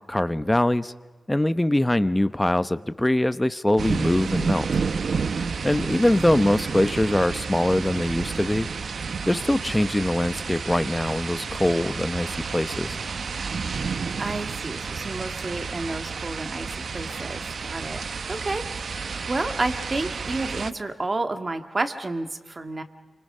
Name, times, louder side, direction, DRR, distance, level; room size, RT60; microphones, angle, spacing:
voice 1, 0.1-0.9 1.3-4.7 5.6-8.7 9.3-13.0, left 1 dB, 10° left, 13 dB, 0.8 m, -23 dB
sound 1, 3.8-20.7, right 5 dB, 65° right, 0.8 m, -31 dB
voice 2, 14.2-18.0 18.3-22.8, right 2 dB, 35° right, 7 dB, 1.9 m, -30 dB
29.0 x 25.0 x 5.6 m, 1.3 s
wide cardioid pair, 95°, 0 cm